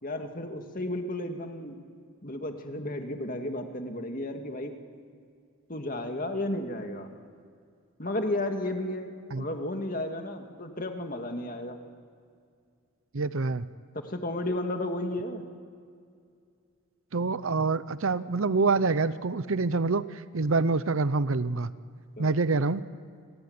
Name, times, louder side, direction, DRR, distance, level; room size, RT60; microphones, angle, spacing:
voice 1, 0.0-1.8 2.2-4.7 5.7-7.1 8.0-9.1 9.4-11.8 13.9-15.4 22.2-22.3, left 1 dB, 40° left, 5 dB, 2.1 m, -33 dB
voice 2, 13.1-13.6 17.1-21.7 22.2-22.8, right 3 dB, 70° right, 15 dB, 0.7 m, -26 dB
29.0 x 19.0 x 9.6 m, 2.2 s
head